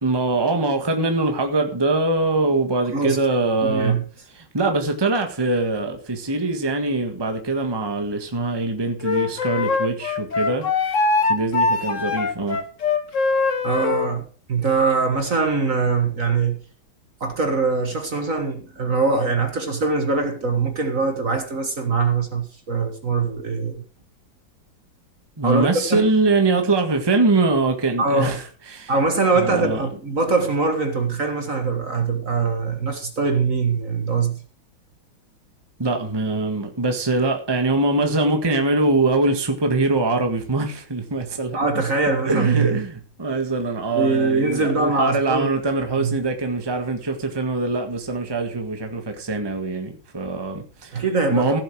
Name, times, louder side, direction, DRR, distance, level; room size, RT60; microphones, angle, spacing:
voice 1, 0.0-4.0 4.3-11.0 11.3-12.6 25.4-28.9 29.3-29.8 35.8-41.6 42.2-51.0 51.3-51.6, right 2 dB, 15° right, 1.6 m, -23 dB
voice 2, 3.6-4.0 13.6-16.6 17.2-23.8 25.4-26.1 28.0-28.4 28.9-34.4 41.5-42.8 43.9-45.5 46.0-46.2 50.9-51.6, right 4 dB, 45° right, 2.0 m, -22 dB
Wind instrument woodwind instrument, 9.0-14.1, left 4 dB, 45° left, 1.5 m, -22 dB
15.5 x 7.9 x 4.8 m
omnidirectional pair, 2.2 m